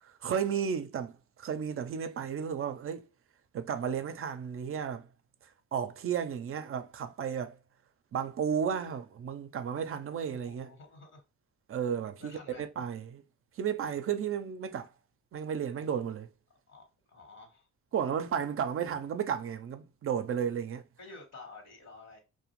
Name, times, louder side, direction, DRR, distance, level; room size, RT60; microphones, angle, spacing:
voice 1, 0.0-1.1 1.4-3.0 3.5-5.1 5.7-7.5 8.1-10.7 11.7-13.2 13.6-14.9 15.3-16.3 17.9-20.8, right 8 dB, 45° right, 0.4 m, -33 dB
voice 2, 10.4-11.2 12.2-12.7 16.7-17.7 21.0-22.2, left 3 dB, 60° left, 1.1 m, -51 dB
2.4 x 2.1 x 3.0 m
supercardioid pair, 65°, 31 cm